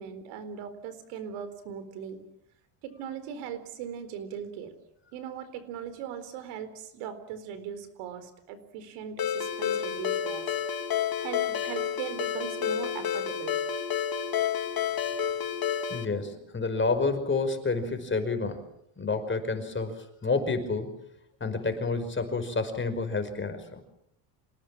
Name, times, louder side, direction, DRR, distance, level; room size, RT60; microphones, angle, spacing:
voice 1, 0.0-2.2 2.8-4.7 5.1-10.5 11.2-13.6, right 8 dB, 80° right, 12 dB, 4.3 m, -39 dB
Ringtone, 9.2-16.1, left 9 dB, 45° left, 2.0 m, -30 dB
voice 2, 15.9-18.6 19.0-20.9 21.4-23.8, left 3 dB, 25° left, 8 dB, 5.3 m, -29 dB
27.5 x 19.0 x 7.5 m, 0.77 s
supercardioid pair, 95°, 49 cm